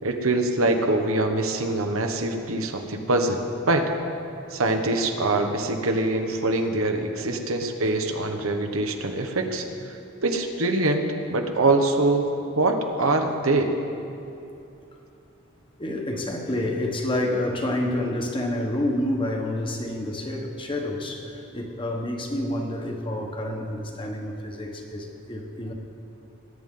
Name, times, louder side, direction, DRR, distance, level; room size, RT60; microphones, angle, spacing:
voice 1, 0.0-3.9 4.5-12.3 12.6-13.7, right 2 dB, 85° right, 5 dB, 1.1 m, -24 dB
voice 2, 2.5-3.0 15.8-25.7, left 1 dB, 25° left, 2 dB, 1.2 m, -29 dB
20.5 x 9.3 x 3.8 m, 2.8 s
head